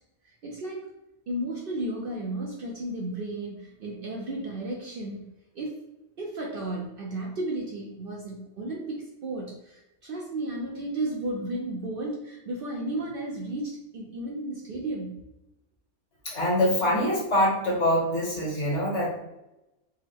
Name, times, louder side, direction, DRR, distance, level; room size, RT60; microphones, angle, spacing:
voice 1, 0.4-0.9 1.3-5.8 6.2-15.2, right 1 dB, 60° right, -1 dB, 0.7 m, -33 dB
voice 2, 16.2-19.2, left 1 dB, 65° left, -3 dB, 1.5 m, -24 dB
3.4 x 2.1 x 3.3 m, 0.92 s
omnidirectional pair, 1.3 m